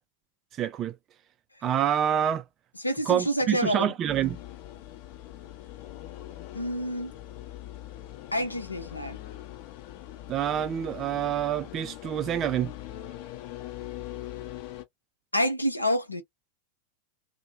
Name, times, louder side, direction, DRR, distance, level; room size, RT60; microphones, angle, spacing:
voice 1, 0.6-1.0 1.6-2.4 3.1-4.4 10.3-12.7, right 10 dB, 30° right, 0.3 m, -27 dB
voice 2, 2.8-3.9 6.5-7.1 8.3-9.2 15.3-16.2, equal, 85° left, 0.6 m, -28 dB
sound 1, 4.1-14.8, left 14 dB, 45° left, 0.6 m, -42 dB
2.5 x 2.1 x 3.0 m
figure-of-eight pair, 90°, 0 cm